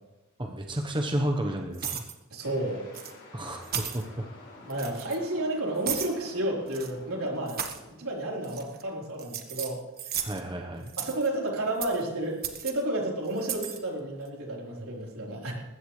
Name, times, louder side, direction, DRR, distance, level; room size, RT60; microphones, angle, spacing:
voice 1, 0.4-2.0 3.3-4.2 10.2-10.9, right 1 dB, 20° right, 2 dB, 1.1 m, -31 dB
sound 1, 1.7-2.1 2.9-3.1 3.6-4.0 4.7-5.2 5.8-6.1 6.7-6.9 7.5-7.8 8.4-8.8 9.2-10.4 10.9-11.3 11.8-12.0 12.4-12.7 13.4-13.8, right 9 dB, 45° right, 1.3 m, -35 dB
voice 2, 2.3-2.8 4.6-7.6 8.0-10.3 11.0-15.5, right 1 dB, 80° right, -2 dB, 4.1 m, -31 dB
sound 2, 2.4-8.7, left 1 dB, 60° left, 5.7 m, -49 dB
20.5 x 15.5 x 3.3 m, 1.0 s
head